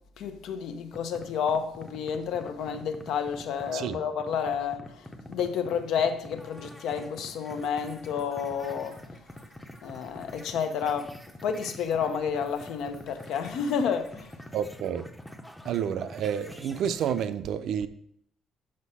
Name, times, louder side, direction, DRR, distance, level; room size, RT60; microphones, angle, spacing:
voice 1, 0.2-9.0 9.8-14.3, left 7 dB, 70° left, 0.8 m, -30 dB
sound 1, 0.9-17.2, left 1 dB, 5° left, 0.7 m, -46 dB
voice 2, 14.5-15.1 15.6-17.9, right 8 dB, 60° right, 0.5 m, -30 dB
6.5 x 5.4 x 5.5 m
cardioid pair, 145°, 0 cm